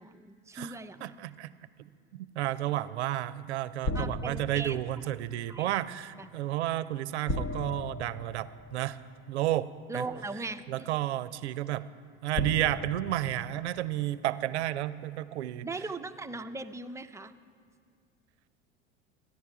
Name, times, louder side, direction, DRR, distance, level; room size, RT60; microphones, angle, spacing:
voice 1, 0.0-1.1 3.9-4.8 5.5-5.7 6.2-6.3 9.9-10.9 15.6-17.3, right 3 dB, 10° right, 8 dB, 0.5 m, -39 dB
voice 2, 1.0-1.5 2.1-9.0 9.3-10.0 10.7-11.8 12.2-15.7, right 14 dB, 80° right, 16 dB, 0.6 m, -32 dB
sound 1, 3.8-4.8 7.3-8.9 10.1-10.2 12.3-14.1, left 1 dB, 40° left, 0.9 m, -36 dB
14.5 x 10.5 x 4.6 m, 2.3 s
hypercardioid pair, 75°, 33 cm